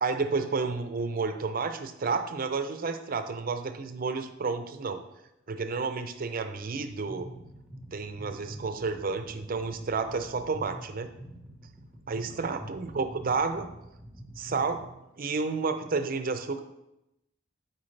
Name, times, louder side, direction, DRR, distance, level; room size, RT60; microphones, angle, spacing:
voice 1, 0.0-5.0 5.5-7.3 7.9-11.1 12.1-13.7 14.4-14.9 15.2-16.6, right 4 dB, 45° right, 9 dB, 0.5 m, -31 dB
sound 1, 6.9-14.9, equal, ahead, 1.0 m, -46 dB
8.5 x 4.5 x 3.2 m, 0.90 s
head